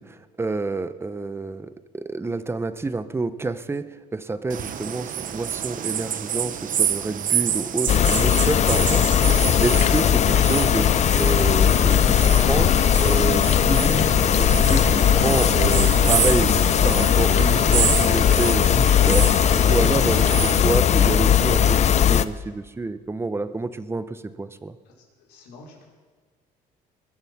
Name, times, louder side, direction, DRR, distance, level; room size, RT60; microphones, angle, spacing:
voice 1, 0.0-3.8 4.1-10.9 11.2-19.3 19.6-24.8, right 3 dB, 15° right, 13 dB, 0.7 m, -28 dB
sound 1, 4.5-20.6, right 9 dB, 50° right, 0.8 m, -28 dB
sound 2, 7.9-22.3, left 9 dB, 40° left, 0.5 m, -18 dB
voice 2, 25.3-25.8, left 3 dB, 80° left, -3 dB, 4.7 m, -46 dB
21.5 x 7.5 x 6.0 m, 1.5 s
cardioid pair, 110°, 17 cm